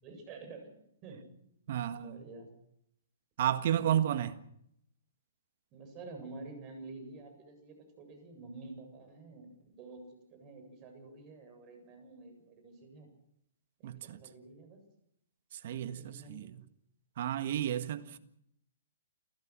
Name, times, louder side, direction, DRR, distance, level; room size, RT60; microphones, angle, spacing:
voice 1, 0.0-1.5 1.9-2.5 5.7-13.1 13.8-14.8 15.8-16.5 18.0-18.1, right 3 dB, 30° right, 7.8 m, -49 dB
voice 2, 1.7-2.2 3.4-4.3 13.8-14.2 15.6-16.6 17.2-18.2, right 10 dB, 55° right, 1.6 m, -32 dB
29.0 x 15.0 x 6.2 m
hypercardioid pair, 130°, 0 cm